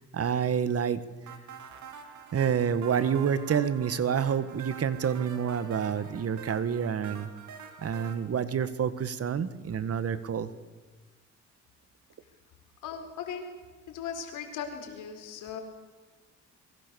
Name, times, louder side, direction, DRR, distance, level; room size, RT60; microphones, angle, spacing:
voice 1, 0.1-1.0 2.3-7.3 7.8-10.5, right 7 dB, 50° right, 13 dB, 1.8 m, -28 dB
sound 1, 1.3-8.2, right 7 dB, 70° right, 3.6 m, -46 dB
voice 2, 12.8-13.5 13.9-15.6, left 7 dB, 90° left, 5 dB, 4.6 m, -38 dB
25.5 x 23.0 x 7.1 m, 1.3 s
cardioid pair, 90°, 30 cm